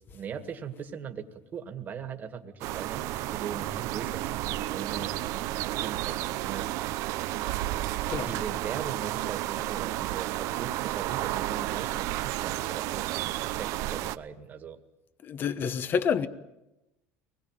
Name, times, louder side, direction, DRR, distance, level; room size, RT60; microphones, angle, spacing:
voice 1, 0.0-7.1 8.2-14.8, right 7 dB, 30° right, 2.0 m, -40 dB
sound 1, 2.6-14.2, right 16 dB, 60° right, 0.8 m, -32 dB
voice 2, 15.2-16.3, left 7 dB, 35° left, 1.1 m, -28 dB
24.0 x 20.5 x 9.1 m
cardioid pair, 150°, 6 cm